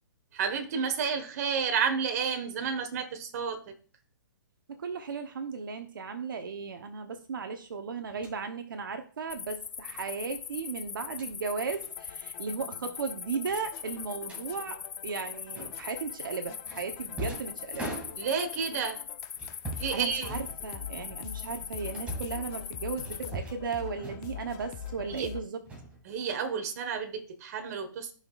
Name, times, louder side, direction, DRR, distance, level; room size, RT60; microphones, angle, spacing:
voice 1, 0.3-3.7 18.2-19.0 19.8-20.3 25.0-25.3 26.0-28.1, right 6 dB, 45° right, 6 dB, 1.5 m, -31 dB
voice 2, 4.7-18.0 19.9-25.6, right 5 dB, 75° right, 6 dB, 1.1 m, -36 dB
sound 1, 8.1-8.4 9.9-10.1 10.9-11.3 11.7-11.9 12.2-12.4 12.7-12.8 13.5-14.4 15.5-16.0 16.7-18.5 19.3-20.0 20.2-21.0 21.5-22.4 23.0-23.7 24.0-24.5 24.8-25.3 25.6-26.5, right 1 dB, 10° right, 2.3 m, -41 dB
sound 2, 9.3-23.3, left 7 dB, 85° left, 0.5 m, -41 dB
sound 3, 11.9-25.4, left 9 dB, 30° left, 0.8 m, -45 dB
15.5 x 5.8 x 2.5 m, 0.42 s
hypercardioid pair, 150°, 11 cm